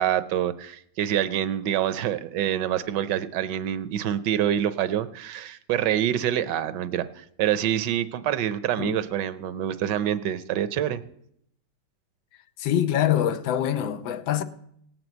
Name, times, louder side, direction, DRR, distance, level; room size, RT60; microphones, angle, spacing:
voice 1, 0.0-11.0, right 10 dB, 75° right, 1.2 m, -26 dB
voice 2, 12.6-14.4, left 10 dB, 90° left, 1.5 m, -24 dB
17.5 x 6.1 x 7.8 m
omnidirectional pair, 2.0 m